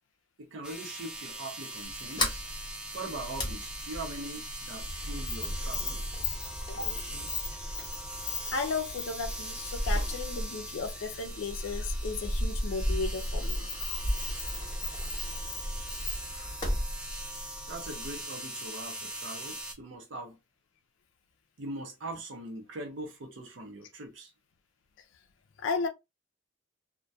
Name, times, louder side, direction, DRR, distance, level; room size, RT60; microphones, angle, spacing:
voice 1, 0.5-2.5 2.9-6.0 6.4-7.5 17.7-20.4 21.6-24.3, right 2 dB, 75° right, 0.6 m, -42 dB
sound 1, 0.6-19.7, right 1 dB, 5° right, 0.4 m, -41 dB
Sliding door, 1.8-18.2, left 1 dB, 25° left, 0.8 m, -35 dB
voice 2, 8.5-14.0 16.3-16.5 25.6-25.9, left 4 dB, 85° left, 0.4 m, -35 dB
2.2 x 2.2 x 2.5 m
head